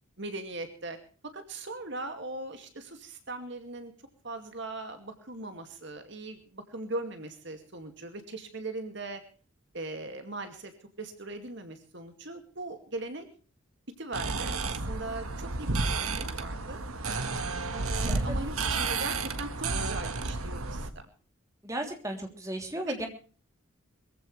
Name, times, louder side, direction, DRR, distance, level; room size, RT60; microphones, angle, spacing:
voice 1, 0.2-1.0 1.2-3.9 4.2-9.2 9.7-10.7 11.0-13.3 14.0-16.8 17.7-21.1, right 2 dB, 55° right, 7 dB, 2.4 m, -40 dB
sound 1, 14.1-20.9, right 3 dB, 90° right, 1.6 m, -31 dB
voice 2, 18.0-18.3 21.6-23.1, right 1 dB, 15° right, 3 dB, 3.3 m, -35 dB
22.5 x 15.5 x 3.3 m, 0.39 s
head